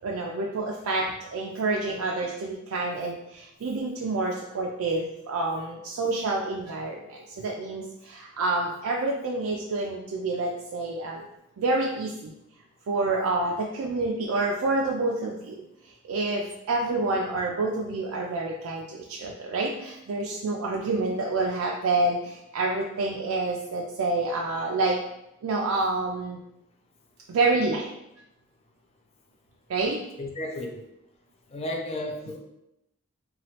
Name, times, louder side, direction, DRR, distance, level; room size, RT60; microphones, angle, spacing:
voice 1, 0.0-11.2 11.6-12.3 12.9-15.6 16.1-25.0 25.4-26.4 27.3-27.9 29.7-30.0, right 2 dB, 75° right, -2 dB, 0.4 m, -28 dB
voice 2, 30.2-30.8 31.5-32.4, left 1 dB, 30° left, 2 dB, 0.3 m, -33 dB
3.0 x 2.3 x 2.8 m, 0.84 s
head